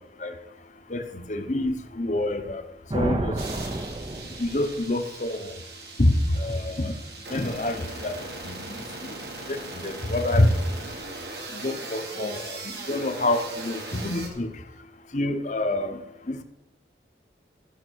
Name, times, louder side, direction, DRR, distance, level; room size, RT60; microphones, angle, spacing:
voice 1, 0.9-2.6 2.9-3.3 4.4-5.5 6.0-6.9 7.3-8.1 8.4-8.6 9.5-10.5 11.5-14.5 15.1-16.0 16.3-16.4, left 1 dB, 40° left, 7 dB, 0.9 m, -26 dB
sound 1, 2.9-4.9, right 1 dB, 25° right, 0.6 m, -30 dB
sound 2, 3.4-14.3, right 2 dB, 65° right, 2.0 m, -39 dB
14.0 x 6.0 x 6.3 m, 0.95 s
head